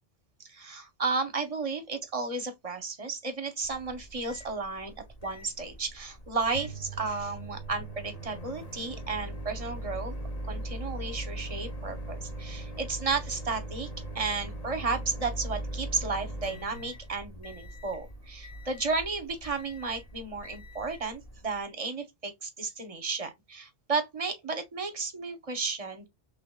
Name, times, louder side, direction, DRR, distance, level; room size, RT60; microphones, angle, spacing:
voice 1, 0.4-10.1 10.4-13.9 14.1-26.1, right 4 dB, 35° right, 0.8 m, -33 dB
Microwave oven, 3.6-21.6, right 1 dB, 40° left, 0.9 m, -40 dB
3.9 x 3.2 x 2.2 m
omnidirectional pair, 1.1 m